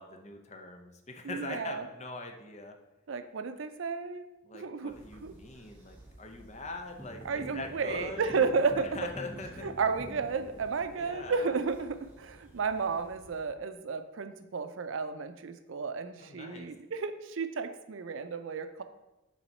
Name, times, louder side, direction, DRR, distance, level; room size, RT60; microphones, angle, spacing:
voice 1, 0.0-2.8 4.4-8.3 8.7-9.7 10.9-11.5 16.2-16.7, left 2 dB, 35° left, 4 dB, 0.7 m, -42 dB
voice 2, 1.2-1.8 3.1-4.3 4.5-4.9 5.2-5.3 7.2-8.9 9.6-18.8, right 5 dB, 80° right, 10 dB, 0.5 m, -32 dB
sound 1, 4.9-13.4, equal, 10° right, 1.3 m, -49 dB
7.1 x 4.0 x 4.2 m, 0.99 s
head